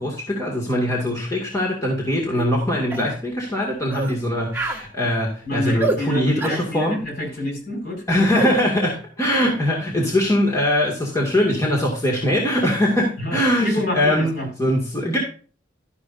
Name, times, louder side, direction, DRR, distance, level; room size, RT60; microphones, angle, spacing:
voice 1, 0.0-7.0 8.1-14.3 14.6-15.2, left 1 dB, 15° left, -3 dB, 2.2 m, -21 dB
sound 1, 2.4-2.5 2.9-3.1 3.9-4.2 4.5-4.8 5.8-6.0 6.4-6.6 8.3-8.5, right 3 dB, 10° right, 1.1 m, -26 dB
voice 2, 5.4-8.0 13.2-14.5, left 1 dB, 55° left, 1 dB, 5.1 m, -27 dB
12.5 x 9.8 x 2.6 m, 0.40 s
head